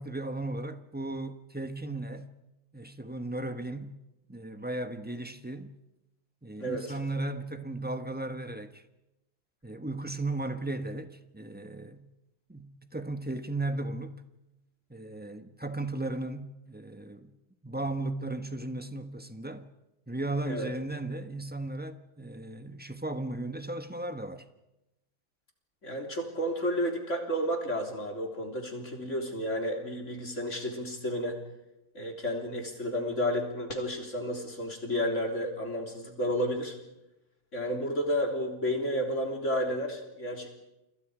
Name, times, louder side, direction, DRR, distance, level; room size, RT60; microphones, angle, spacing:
voice 1, 0.0-2.3 2.7-4.0 4.3-5.7 6.4-8.8 9.6-12.1 12.5-14.2 14.9-17.3 17.6-19.7 20.1-24.4, right 2 dB, 10° right, 0.7 m, -36 dB
voice 2, 25.8-31.4 31.9-36.8 37.5-40.5, equal, 35° left, 3.7 m, -31 dB
29.5 x 26.0 x 5.0 m
omnidirectional pair, 2.2 m